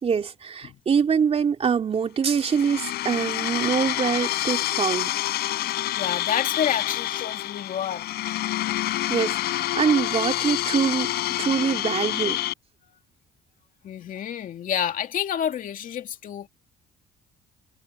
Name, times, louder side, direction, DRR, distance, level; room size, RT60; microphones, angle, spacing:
voice 1, 0.0-5.1 9.1-11.1 11.4-12.4, right 6 dB, 35° right, 3.8 m, -24 dB
sound 1, 2.3-12.5, left 15 dB, 75° left, 3.7 m, -27 dB
voice 2, 5.7-8.1 13.8-16.5, left 9 dB, 55° left, 2.5 m, -29 dB
cardioid pair, 110°, 17 cm